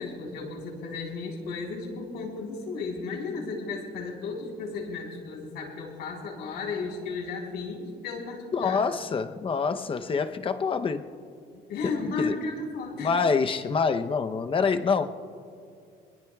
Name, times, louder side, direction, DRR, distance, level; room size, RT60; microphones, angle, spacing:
voice 1, 0.0-8.8 11.7-13.1, left 4 dB, 85° left, -1 dB, 4.0 m, -34 dB
voice 2, 8.5-11.1 12.0-12.3 13.0-15.1, left 5 dB, 30° left, 8 dB, 0.8 m, -26 dB
23.5 x 21.0 x 2.4 m, 2.4 s
cardioid pair, 110°, 17 cm